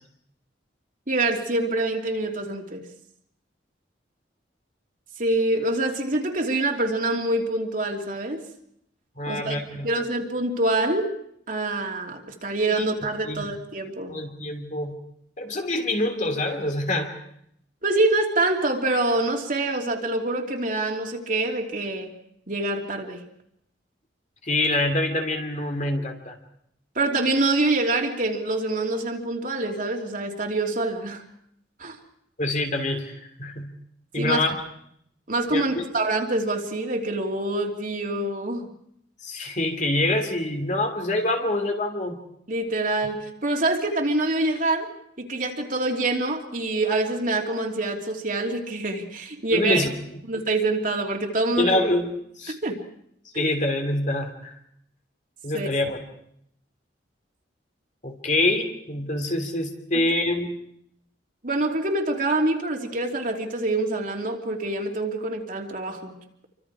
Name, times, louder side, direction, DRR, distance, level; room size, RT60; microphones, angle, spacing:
voice 1, 1.1-2.8 5.2-8.4 9.3-11.1 11.5-14.1 17.8-22.1 22.5-23.2 26.9-31.2 31.8-32.0 34.2-34.4 35.3-38.7 42.5-44.9 45.2-49.8 50.2-51.8 52.6-52.8 53.3-53.5 55.5-55.7 59.9-60.0 61.4-66.2, right 2 dB, 45° right, 1 dB, 3.0 m, -25 dB
voice 2, 9.2-9.9 12.8-12.9 13.2-13.4 14.1-15.0 15.4-17.1 24.4-26.3 32.4-33.7 34.1-34.5 35.5-35.8 39.2-42.2 49.5-49.9 51.6-52.1 52.4-52.5 53.3-54.5 55.4-56.0 58.0-60.5, left 1 dB, 45° left, 4 dB, 3.0 m, -25 dB
28.5 x 25.0 x 4.9 m, 0.70 s
head